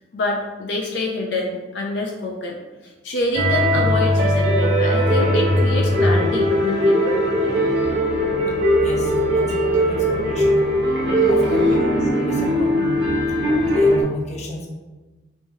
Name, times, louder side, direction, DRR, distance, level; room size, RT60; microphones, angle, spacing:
voice 1, 0.1-2.6 3.0-7.2, left 2 dB, 70° left, 0 dB, 0.5 m, -26 dB
sound 1, 3.3-14.0, equal, 70° right, 1.3 m, -19 dB
voice 2, 8.8-10.7 11.3-13.0 13.7-14.7, left 1 dB, 40° left, -1 dB, 0.8 m, -33 dB
5.3 x 3.0 x 2.7 m, 1.2 s
head